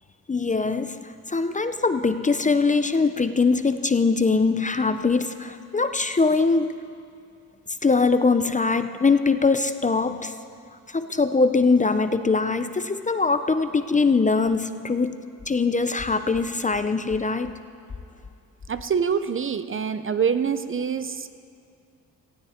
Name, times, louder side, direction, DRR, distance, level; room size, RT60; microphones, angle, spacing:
voice 1, 0.3-6.8 7.8-10.3 10.9-15.2 15.5-17.6, left 4 dB, 20° left, 10 dB, 0.5 m, -22 dB
voice 2, 18.7-21.3, right 6 dB, 35° right, 11 dB, 0.5 m, -25 dB
18.5 x 15.5 x 4.3 m, 2.4 s
cardioid pair, 120°, 37 cm